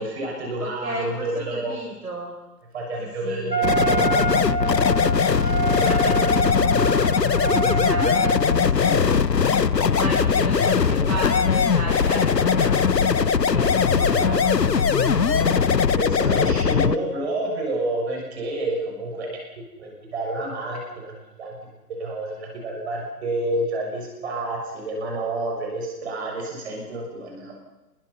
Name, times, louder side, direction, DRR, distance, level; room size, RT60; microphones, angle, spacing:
voice 1, 0.0-1.8 2.7-4.6 5.1-5.6 8.7-9.1 9.7-10.1 10.9-11.1 14.0-14.7 16.0-19.3 19.8-21.6 21.9-27.5, right 1 dB, 40° right, 0 dB, 6.5 m, -30 dB
voice 2, 0.6-2.3 3.0-3.5 5.7-9.2 9.9-15.6, right 1 dB, 65° right, 0 dB, 4.6 m, -34 dB
Wind instrument woodwind instrument, 3.5-8.8, right 3 dB, 85° right, 2.8 m, -26 dB
sound 1, 3.6-17.0, left 6 dB, 85° left, 0.8 m, -20 dB
28.5 x 21.5 x 5.8 m, 1.0 s
figure-of-eight pair, 135°, 48 cm